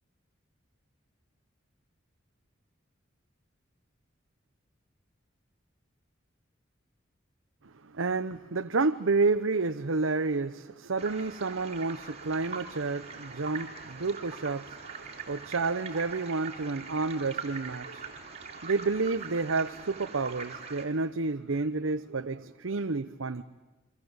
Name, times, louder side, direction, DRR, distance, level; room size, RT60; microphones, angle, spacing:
voice 1, 7.9-23.4, right 3 dB, 85° right, 0.9 m, -30 dB
sound 1, 11.0-20.8, right 5 dB, 35° right, 3.8 m, -43 dB
30.0 x 24.0 x 8.0 m
head